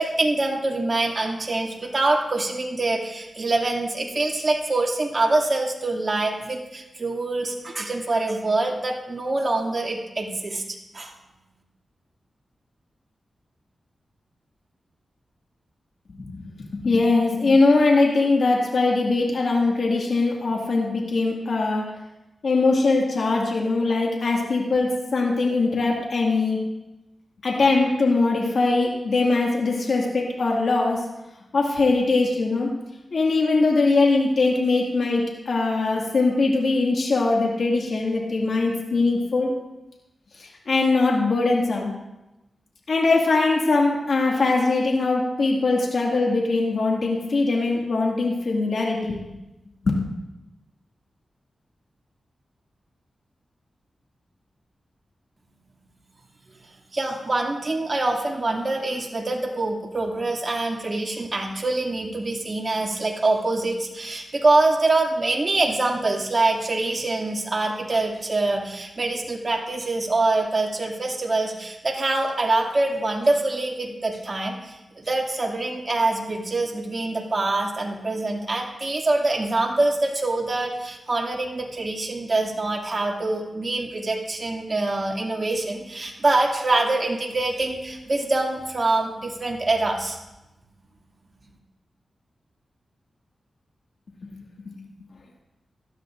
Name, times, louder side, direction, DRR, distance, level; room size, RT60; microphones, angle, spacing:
voice 1, 0.0-11.1 56.9-90.2, right 2 dB, 45° right, 0 dB, 2.5 m, -24 dB
voice 2, 16.1-21.9 22.4-26.6 27.4-31.0 31.5-32.7 33.1-39.5 40.4-41.9 42.9-49.2, left 3 dB, 70° left, -2 dB, 2.1 m, -21 dB
18.0 x 13.0 x 2.6 m, 0.97 s
cardioid pair, 60°, 0 cm